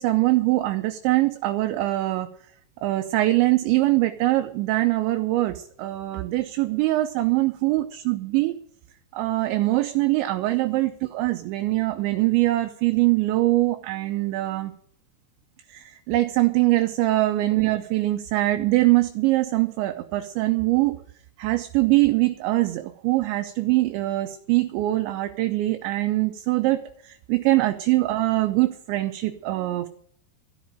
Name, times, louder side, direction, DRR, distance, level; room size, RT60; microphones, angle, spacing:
voice 1, 0.0-2.3 2.8-8.5 9.1-14.7 15.7-21.0 21.4-29.9, right 18 dB, 80° right, 7 dB, 2.7 m, -23 dB
13.5 x 11.0 x 6.3 m, 0.62 s
omnidirectional pair, 5.9 m